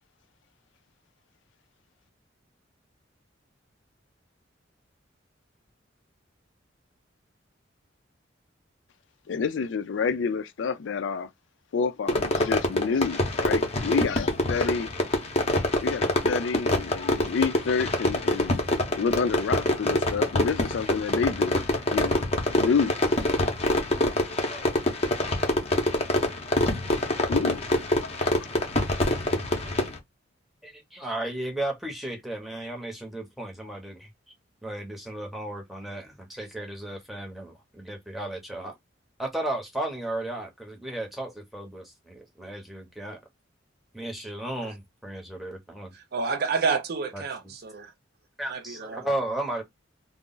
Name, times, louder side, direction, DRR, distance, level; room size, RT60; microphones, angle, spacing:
voice 1, 9.3-11.3 11.7-14.9 15.8-18.6 18.9-21.5 21.9-22.3 22.5-22.9 27.3-27.6 28.0-28.5, left 5 dB, 70° left, 0.4 m, -28 dB
Fireworks, 12.1-30.0, left 1 dB, 35° left, 0.7 m, -25 dB
voice 2, 30.6-34.1 34.6-38.8 39.2-43.2 43.9-45.9 47.1-47.2 48.4-49.6, right 1 dB, ahead, 0.8 m, -34 dB
voice 3, 45.9-47.9 48.5-49.1, right 5 dB, 55° right, 0.5 m, -29 dB
2.4 x 2.0 x 3.7 m
head